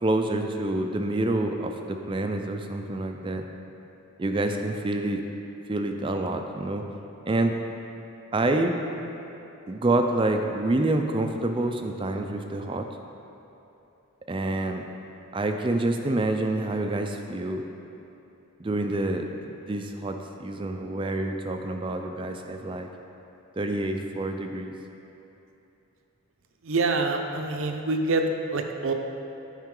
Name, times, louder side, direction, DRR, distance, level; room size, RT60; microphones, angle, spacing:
voice 1, 0.0-3.4 4.2-5.2 5.7-6.8 7.3-7.5 8.3-8.8 9.7-12.9 14.3-14.8 15.3-17.6 18.6-20.1 20.4-22.9 23.6-24.7, right 2 dB, 25° right, 5 dB, 0.4 m, -27 dB
voice 2, 26.6-28.3 28.5-28.9, right 3 dB, 65° right, 4 dB, 0.6 m, -26 dB
10.5 x 5.6 x 3.7 m, 2.9 s
head